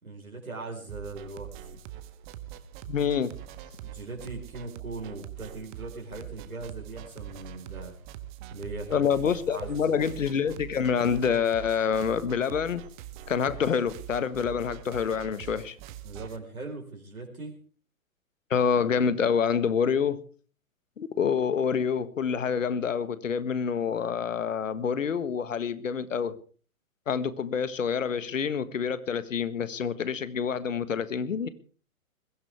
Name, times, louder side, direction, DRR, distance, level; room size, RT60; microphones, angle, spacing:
voice 1, 0.0-1.8 3.8-7.9 8.5-9.1 9.5-10.0 16.0-17.6, right 3 dB, 80° right, 1 dB, 4.7 m, -40 dB
sound 1, 0.9-16.4, right 11 dB, 35° right, 1.5 m, -44 dB
voice 2, 2.9-3.3 8.9-12.8 13.3-15.7 18.5-20.2 21.0-26.4 27.1-31.5, left 7 dB, 65° left, 14 dB, 1.6 m, -27 dB
21.5 x 16.0 x 3.5 m, 0.40 s
figure-of-eight pair, 115°, 42 cm